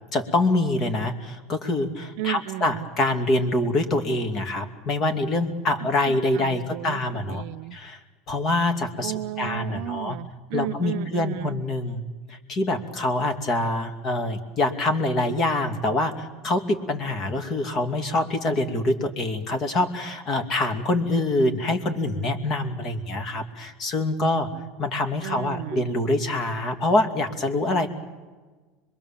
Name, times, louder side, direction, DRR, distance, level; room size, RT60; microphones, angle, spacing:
voice 1, 0.1-7.4 7.7-8.0 8.3-10.2 10.5-12.0 12.3-24.5 24.8-27.9, left 2 dB, 40° left, 7 dB, 2.5 m, -25 dB
voice 2, 2.2-2.9 5.8-7.0 7.3-7.8 9.0-11.6 25.2-25.9, right 14 dB, 65° right, 16 dB, 0.7 m, -34 dB
26.0 x 22.0 x 7.4 m, 1.3 s
supercardioid pair, 140°, 0 cm